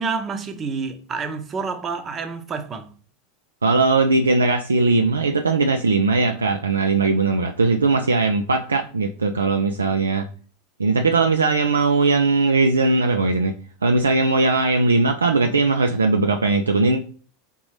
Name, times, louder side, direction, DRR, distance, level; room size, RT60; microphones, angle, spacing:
voice 1, 0.0-2.9, right 4 dB, 30° right, 0.8 m, -28 dB
voice 2, 3.6-10.3 10.8-13.5 13.8-17.0, right 3 dB, 90° right, 0.3 m, -19 dB
4.0 x 3.7 x 3.1 m
hypercardioid pair, 85°, 0 cm